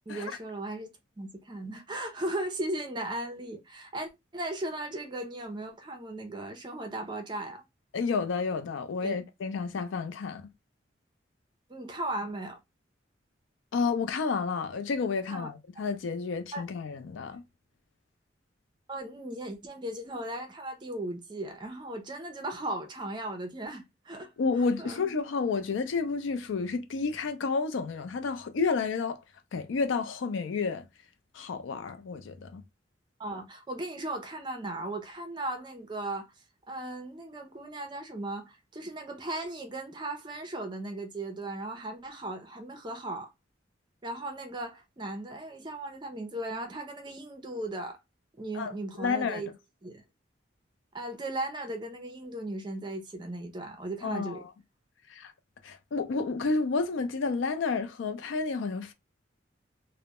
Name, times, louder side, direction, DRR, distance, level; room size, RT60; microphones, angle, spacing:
voice 1, 0.1-0.9 1.2-7.6 9.0-9.2 11.7-12.6 15.3-15.5 16.5-16.6 18.9-24.3 24.8-25.1 33.2-36.3 36.7-43.3 44.0-48.0 48.4-49.5 49.8-50.0 50.9-54.4, right 1 dB, 25° right, 0.4 m, -37 dB
voice 2, 7.9-10.4 13.7-17.4 24.4-29.2 29.5-30.9 31.3-32.6 48.5-48.7 49.0-49.4 54.0-54.5 55.1-55.3 55.6-58.9, left 4 dB, 85° left, 0.4 m, -30 dB
2.2 x 2.0 x 2.8 m
head